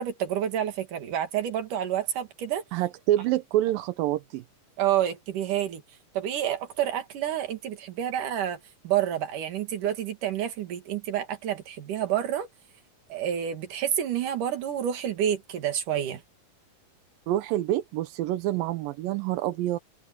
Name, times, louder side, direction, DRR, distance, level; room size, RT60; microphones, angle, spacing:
voice 1, 0.0-2.6 4.8-5.8 6.1-8.6 8.8-12.5 13.1-16.2, right 10 dB, 70° right, 3.6 m, -28 dB
voice 2, 2.7-4.4 17.3-19.8, right 14 dB, 85° right, 2.6 m, -27 dB
open air
omnidirectional pair, 3.9 m